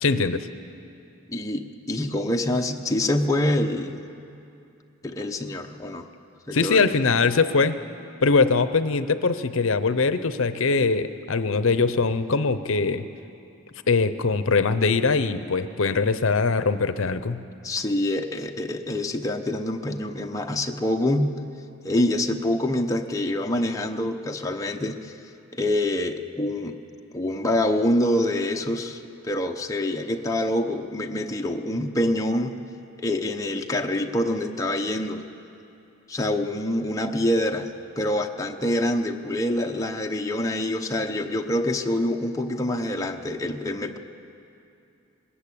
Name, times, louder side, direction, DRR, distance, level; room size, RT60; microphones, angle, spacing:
voice 1, 0.0-0.5 6.5-7.8 8.2-13.0 13.9-17.4, left 4 dB, 70° left, 12 dB, 0.7 m, -22 dB
voice 2, 1.3-4.1 5.0-6.1 6.5-6.9 17.6-21.4 21.8-25.1 25.5-26.8 27.1-32.6 33.0-35.2 36.1-44.0, left 1 dB, 15° left, 2 dB, 0.8 m, -26 dB
20.5 x 18.5 x 8.5 m, 2.7 s
head